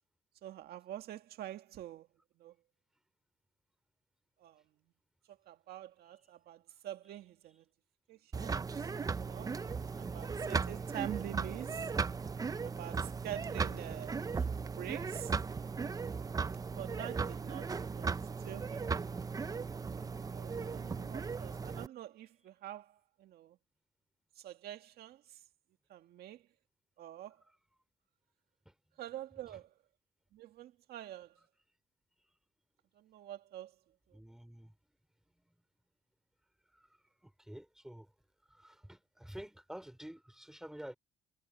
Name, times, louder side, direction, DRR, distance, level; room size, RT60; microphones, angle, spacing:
voice 1, 0.4-2.1 2.4-2.5 4.4-4.6 5.5-7.6 8.1-8.9 9.2-9.6 10.0-11.9 12.6-14.4 14.7-15.3 16.8-18.8 20.3-23.6 24.4-25.4 25.9-26.4 27.0-27.4 29.0-29.7 30.3-31.3 33.0-33.7, right 12 dB, 70° right, 1.8 m, -46 dB
sound 1, 8.3-21.9, right 5 dB, 20° right, 0.6 m, -37 dB
voice 2, 34.1-34.7 37.2-38.1 38.5-40.9, equal, 5° right, 3.6 m, -49 dB
cardioid pair, 110°, 17 cm